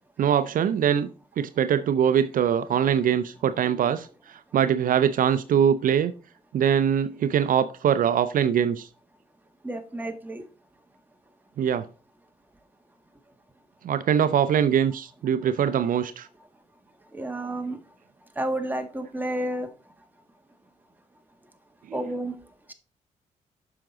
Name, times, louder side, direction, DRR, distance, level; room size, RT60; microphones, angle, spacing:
voice 1, 0.2-1.1 1.4-4.1 4.5-6.1 6.5-8.9 11.6-11.8 13.8-16.3 21.9-22.1, right 8 dB, 70° right, 0.6 m, -22 dB
voice 2, 9.6-10.4 17.1-17.8 18.3-19.7 21.9-22.4, right 1 dB, 10° right, 1.7 m, -30 dB
7.5 x 5.9 x 3.8 m
cardioid pair, 65°, 15 cm